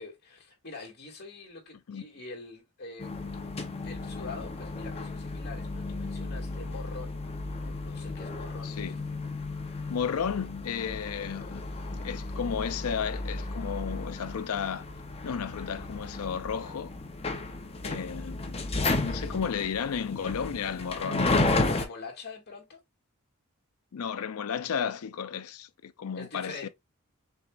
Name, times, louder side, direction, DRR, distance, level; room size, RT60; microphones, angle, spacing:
voice 1, 0.0-3.3 3.8-9.0 21.6-22.8 26.2-26.7, left 3 dB, 50° left, 2.1 m, -44 dB
sound 1, 3.0-21.9, left 2 dB, 30° left, 0.7 m, -33 dB
voice 2, 8.6-8.9 9.9-11.6 11.9-14.9 15.2-16.9 17.8-18.7 19.0-21.3 23.9-26.7, left 7 dB, 80° left, 0.5 m, -33 dB
6.2 x 3.0 x 2.4 m
head